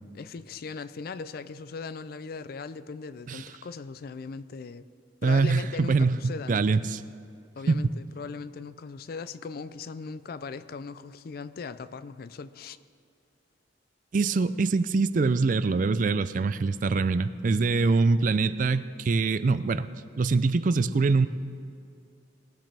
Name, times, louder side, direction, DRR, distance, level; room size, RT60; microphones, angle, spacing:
voice 1, 0.1-4.9 5.2-6.7 7.6-12.8, left 5 dB, 50° left, 14 dB, 0.4 m, -39 dB
voice 2, 5.2-7.0 7.7-7.9 14.1-19.9 20.2-21.3, right 4 dB, 45° right, 14 dB, 0.3 m, -24 dB
19.0 x 9.0 x 3.4 m, 2.4 s
head